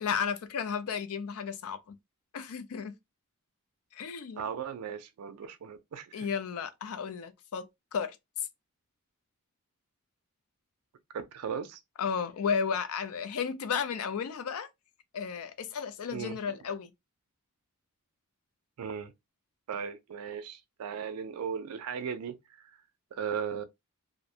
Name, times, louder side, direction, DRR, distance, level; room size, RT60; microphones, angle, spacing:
voice 1, 0.0-2.0 2.3-2.9 3.9-4.4 6.1-8.5 12.0-14.7 15.1-16.9, left 6 dB, 70° left, 0.4 m, -33 dB
voice 2, 4.4-6.3 11.1-11.8 16.1-16.4 18.8-19.1 19.7-22.8 23.1-23.6, right 7 dB, 80° right, 0.4 m, -37 dB
2.5 x 2.1 x 2.6 m
head